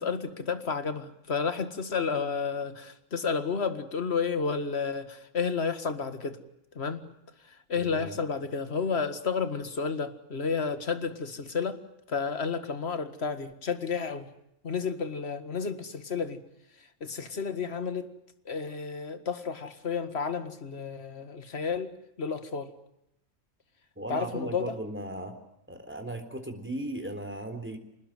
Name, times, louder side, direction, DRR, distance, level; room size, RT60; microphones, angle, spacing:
voice 1, 0.0-6.4 6.8-7.1 7.5-11.8 12.1-14.3 14.6-16.4 17.0-18.1 18.5-22.7 24.1-24.8, left 5 dB, 50° left, 10 dB, 2.1 m, -31 dB
voice 2, 7.8-8.2 24.0-25.4 25.7-27.8, right 1 dB, 10° right, 6 dB, 3.8 m, -37 dB
27.5 x 20.0 x 9.2 m, 0.80 s
omnidirectional pair, 1.4 m